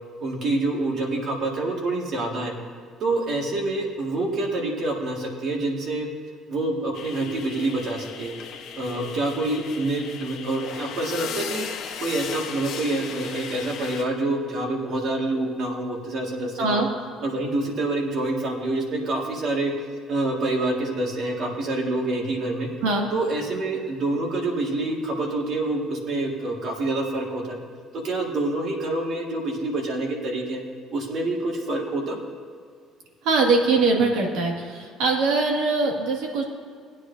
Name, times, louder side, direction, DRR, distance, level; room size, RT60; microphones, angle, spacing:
voice 1, 0.2-2.5 3.0-6.1 6.5-8.3 8.8-11.7 12.0-16.8 17.2-19.7 20.1-22.7 23.1-27.6 27.9-30.6 30.9-32.2, right 2 dB, 45° right, 0 dB, 1.9 m, -27 dB
sound 1, 6.9-14.0, left 7 dB, 55° left, 1.0 m, -36 dB
voice 2, 33.2-36.4, right 3 dB, 80° right, 0 dB, 2.0 m, -22 dB
19.0 x 9.5 x 2.7 m, 2.1 s
cardioid pair, 170°, 0 cm